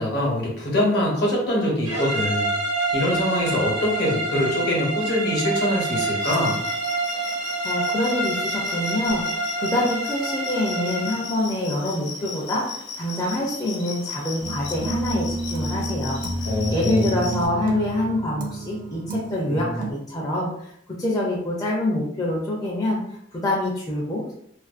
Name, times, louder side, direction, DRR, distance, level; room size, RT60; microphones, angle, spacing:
voice 1, 0.0-2.5 2.9-6.6 16.5-17.1, left 1 dB, 60° left, -3 dB, 0.9 m, -23 dB
sound 1, 1.8-11.3, right 2 dB, 75° right, 0.7 m, -27 dB
sound 2, 6.2-17.5, left 5 dB, 85° left, 0.5 m, -36 dB
voice 2, 7.6-16.2 16.7-20.7 21.0-24.3, left 1 dB, 20° left, -5 dB, 0.4 m, -26 dB
sound 3, 14.4-19.9, right 2 dB, 45° right, 0.4 m, -30 dB
2.4 x 2.2 x 2.4 m, 0.70 s
head